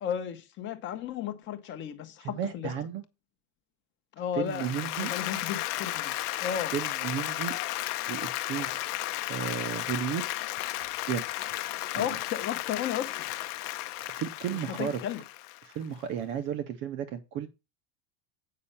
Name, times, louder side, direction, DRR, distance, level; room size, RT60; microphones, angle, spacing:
voice 1, 0.0-2.7 4.2-4.7 5.0-6.7 11.9-13.3 14.5-15.2, left 9 dB, 25° left, 0.8 m, -34 dB
voice 2, 2.2-3.0 4.3-5.1 6.7-7.6 8.1-8.7 9.3-10.3 11.1-11.2 11.9-12.2 14.1-15.0 15.6-17.5, right 9 dB, 25° right, 0.5 m, -33 dB
Applause, 4.5-15.8, left 16 dB, 80° left, 1.0 m, -34 dB
8.6 x 5.4 x 5.4 m
supercardioid pair, 175°, 45 cm